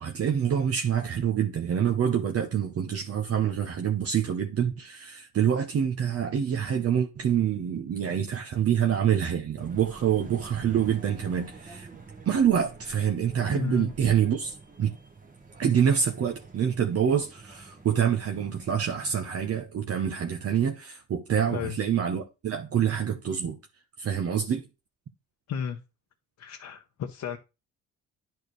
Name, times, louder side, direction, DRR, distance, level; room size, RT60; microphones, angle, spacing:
voice 1, 0.0-11.9 12.2-15.0 15.6-23.6 24.0-24.6, right 8 dB, 50° right, 1.0 m, -26 dB
sound 1, 9.6-19.6, right 3 dB, 25° right, 1.5 m, -47 dB
voice 2, 13.5-13.9 21.5-21.7 25.5-25.8 26.4-27.4, left 7 dB, 65° left, 0.9 m, -33 dB
10.5 x 4.6 x 3.2 m
cardioid pair, 90°, 30 cm